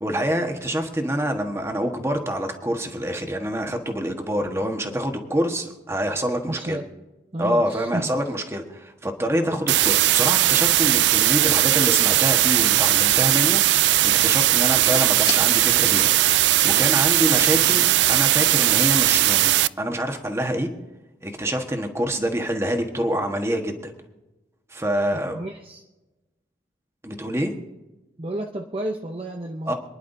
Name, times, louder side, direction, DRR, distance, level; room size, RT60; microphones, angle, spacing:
voice 1, 0.0-6.8 7.4-16.3 16.6-19.5 19.8-20.7 21.2-23.9 24.7-25.4 27.0-27.5 29.7-29.8, equal, 15° right, 4 dB, 1.4 m, -26 dB
voice 2, 6.5-6.8 7.3-8.1 9.3-9.6 22.2-22.3 25.1-25.8 28.2-29.7, right 1 dB, 30° right, 2 dB, 0.7 m, -31 dB
sound 1, 9.7-19.7, right 15 dB, 85° right, 0.3 m, -18 dB
sound 2, 13.0-18.9, left 4 dB, 25° left, 2.3 m, -39 dB
27.0 x 10.5 x 2.7 m, 1.1 s
head